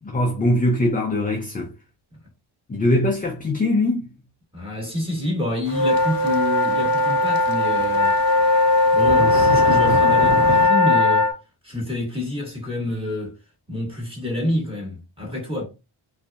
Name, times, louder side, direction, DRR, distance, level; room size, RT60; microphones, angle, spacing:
voice 1, 0.0-1.7 2.7-4.1, left 1 dB, 20° left, 0.4 m, -21 dB
voice 2, 4.5-8.1 8.9-11.3 11.6-13.4 13.7-15.6, left 1 dB, 10° right, 1.5 m, -27 dB
sound 1, 5.7-11.3, left 3 dB, 35° left, 0.9 m, -18 dB
sound 2, 5.7-10.7, right 6 dB, 45° right, 0.5 m, -31 dB
2.6 x 2.4 x 2.3 m
cardioid pair, 75°, 50 cm